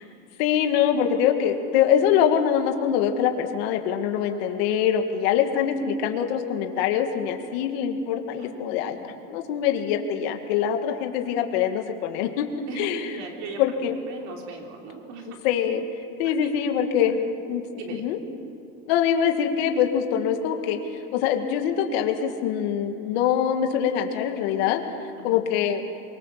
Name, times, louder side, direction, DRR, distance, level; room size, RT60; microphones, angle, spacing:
voice 1, 0.4-9.0 9.3-12.5 12.8-13.2 13.6-14.0 15.4-15.8 16.2-17.2 17.5-17.6 18.0-18.2 18.9-20.8 21.1-24.8 25.2-25.8, left 9 dB, 85° left, 4 dB, 2.2 m, -24 dB
voice 2, 12.7-13.6 14.1-15.4 16.4-16.5 17.0-17.1 17.8-18.0 25.2-25.4, right 5 dB, 60° right, 1 dB, 3.4 m, -38 dB
24.0 x 23.0 x 7.6 m, 2.5 s
cardioid pair, 175°, 30 cm